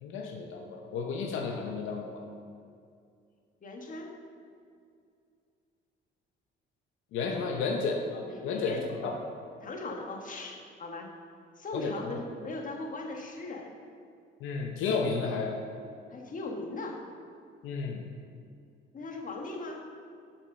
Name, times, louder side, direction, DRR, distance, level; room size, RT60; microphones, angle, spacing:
voice 1, 0.0-2.2 7.1-9.2 11.7-12.1 14.4-15.6 17.6-18.0, left 4 dB, 90° left, 2 dB, 0.8 m, -32 dB
voice 2, 3.6-4.1 7.4-7.5 8.3-8.9 9.6-11.1 11.6-13.7 16.1-17.0 18.9-19.8, left 2 dB, 40° left, 1 dB, 1.4 m, -39 dB
7.3 x 5.4 x 5.4 m, 2.4 s
cardioid pair, 90°, 20 cm